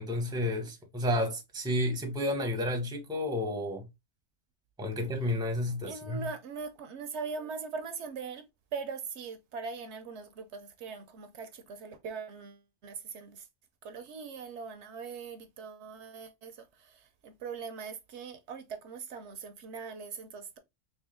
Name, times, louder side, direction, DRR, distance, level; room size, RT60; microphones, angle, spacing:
voice 1, 0.0-3.9 4.8-6.3, left 1 dB, 5° right, 0.7 m, -31 dB
voice 2, 5.8-13.5 13.8-20.6, right 5 dB, 70° right, 0.8 m, -41 dB
3.6 x 2.7 x 3.3 m
omnidirectional pair, 1.3 m